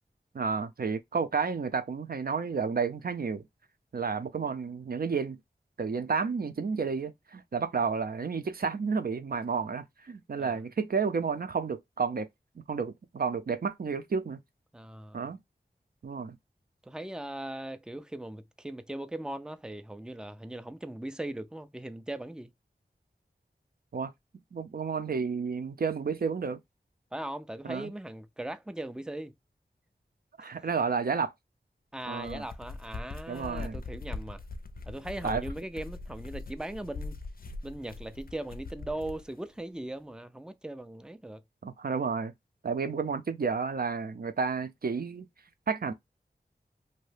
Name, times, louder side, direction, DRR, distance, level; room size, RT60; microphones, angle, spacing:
voice 1, 0.3-3.4 3.9-5.4 5.8-12.3 12.7-14.4 15.1-15.4 16.0-16.4 23.9-24.1 24.5-26.6 27.6-27.9 30.4-31.3 32.1-32.4 33.3-33.8 35.2-35.4 41.6-42.3 42.6-45.3 45.7-45.9, right 5 dB, 60° right, 0.5 m, -31 dB
voice 2, 14.7-15.3 16.8-22.5 27.1-29.3 30.4-30.5 31.9-34.4 34.9-37.2 37.6-41.4, right 1 dB, 5° right, 0.3 m, -39 dB
sound 1, 32.1-39.2, left 3 dB, 55° left, 0.5 m, -41 dB
2.7 x 2.1 x 3.2 m
wide cardioid pair, 65°, 18 cm